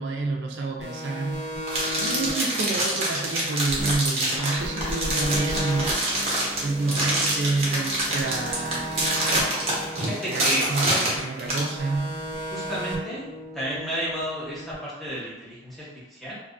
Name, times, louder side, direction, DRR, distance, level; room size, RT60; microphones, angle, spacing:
voice 1, 0.0-1.5 2.0-6.3 6.6-8.9 10.3-12.2, right 3 dB, 80° right, 2 dB, 0.3 m, -28 dB
sound 1, 0.8-4.1 4.4-7.6 8.0-11.2 11.5-14.7, equal, 40° left, 0.4 m, -36 dB
sound 2, 1.7-11.7, right 1 dB, 35° right, 0.6 m, -26 dB
sound 3, 3.7-4.1 4.6-9.9, equal, 55° left, 1.0 m, -37 dB
voice 2, 9.9-11.0 12.5-13.3 13.5-16.3, equal, ahead, -9 dB, 0.7 m, -32 dB
2.5 x 2.3 x 2.4 m, 1.0 s
head